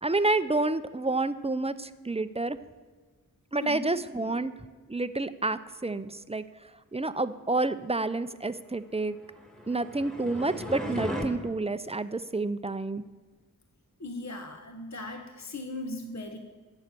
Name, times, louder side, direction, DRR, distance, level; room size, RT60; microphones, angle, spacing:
voice 1, 0.0-2.6 3.5-4.5 4.9-6.4 6.9-9.2 9.7-13.0, right 2 dB, 20° right, 13 dB, 0.5 m, -29 dB
voice 2, 3.6-3.9 4.2-4.3 14.0-16.4, left 2 dB, 50° left, 5 dB, 1.0 m, -38 dB
sound 1, 9.3-11.3, equal, ahead, 1.7 m, -36 dB
12.0 x 8.2 x 6.7 m, 1.3 s
wide cardioid pair, 45°, 35 cm